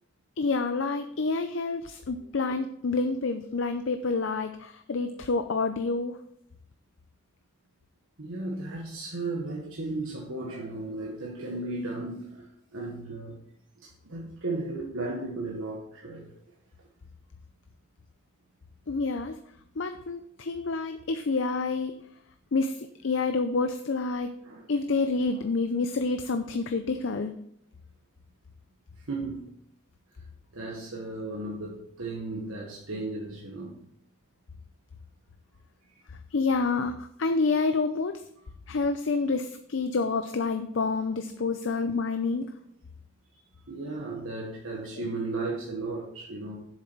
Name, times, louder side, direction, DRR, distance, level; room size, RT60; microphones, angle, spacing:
voice 1, 0.4-6.2 18.9-19.4 19.8-21.9 22.5-24.3 24.7-27.3 36.3-38.2 38.7-42.5, left 3 dB, 70° left, 8 dB, 0.5 m, -28 dB
voice 2, 8.2-13.4 13.8-16.3 16.8-16.9 24.4-24.6 29.0-29.5 30.2-30.3 30.5-33.8 35.9-36.0 43.7-46.7, right 2 dB, 85° right, -2 dB, 1.4 m, -35 dB
7.6 x 7.3 x 4.6 m, 0.70 s
head